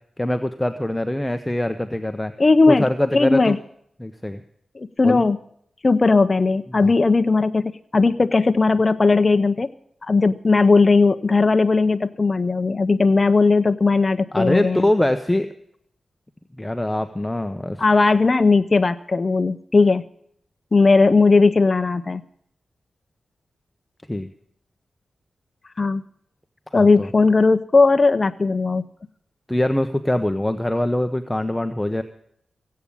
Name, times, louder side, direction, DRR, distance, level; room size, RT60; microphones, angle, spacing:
voice 1, 0.2-2.3 2.7-3.6 4.0-4.4 5.0-5.2 6.7-6.9 14.3-15.5 16.6-17.8 24.1-24.3 26.8-27.1 29.5-32.0, left 1 dB, 10° left, 8 dB, 0.9 m, -23 dB
voice 2, 2.4-2.9 3.1-3.6 4.8-5.4 5.8-9.7 10.1-14.9 17.8-20.0 20.7-22.2 25.8-26.0 26.7-28.8, left 3 dB, 40° left, 8 dB, 0.6 m, -17 dB
16.0 x 8.5 x 8.7 m, 0.69 s
cardioid pair, 70°, 0 cm